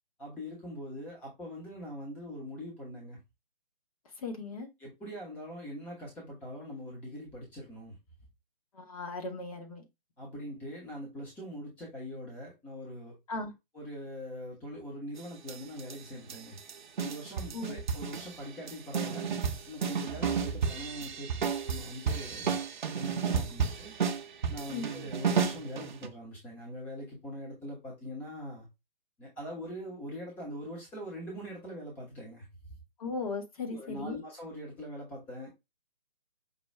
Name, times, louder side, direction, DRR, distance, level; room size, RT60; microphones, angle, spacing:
voice 1, 0.2-3.2 4.8-7.9 10.2-13.1 13.7-16.6 17.0-19.3 19.7-22.6 22.9-23.9 24.5-28.7 29.2-32.5 33.7-35.5, equal, 5° left, 0.7 m, -42 dB
voice 2, 4.2-4.7 8.7-9.9 13.3-13.5 17.5-17.8 24.7-24.9 33.0-34.2, left 3 dB, 35° left, 1.0 m, -37 dB
sound 1, 15.5-15.9 16.3-16.7 17.0-18.3 18.7-26.1, right 6 dB, 50° right, 0.7 m, -32 dB
5.2 x 2.3 x 3.2 m
figure-of-eight pair, 140°, 30 cm